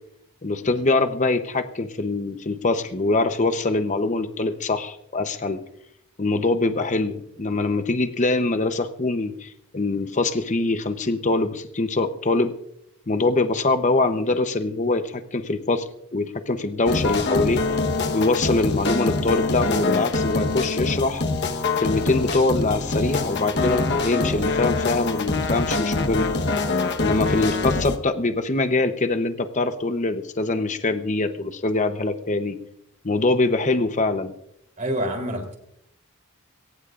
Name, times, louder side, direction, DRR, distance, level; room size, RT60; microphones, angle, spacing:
voice 1, 0.4-5.6 6.2-12.5 13.1-17.6 18.1-21.2 21.8-26.3 27.0-32.6 33.0-34.3, left 2 dB, 35° left, 8 dB, 0.8 m, -23 dB
sound 1, 16.9-28.0, left 3 dB, 50° left, 1.1 m, -24 dB
voice 2, 34.8-35.6, equal, 35° right, 4 dB, 3.4 m, -28 dB
22.0 x 18.0 x 2.5 m, 0.78 s
head